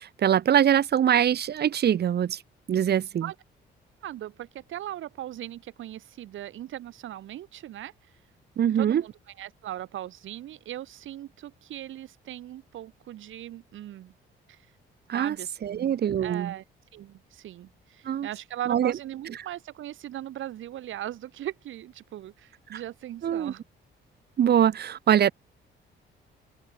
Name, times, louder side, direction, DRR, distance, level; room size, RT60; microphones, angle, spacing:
voice 1, 0.0-2.4 2.7-3.3 8.6-9.0 15.1-15.4 15.6-16.5 18.0-18.3 18.7-18.9 22.7-22.8 23.2-23.5 24.4-25.3, right 9 dB, 55° right, 1.2 m, -23 dB
voice 2, 4.0-7.9 8.7-14.1 14.5-14.6 15.1-15.8 16.2-16.6 16.9-23.6, right 13 dB, 80° right, 4.4 m, -39 dB
open air
cardioid pair, 90°, 20 cm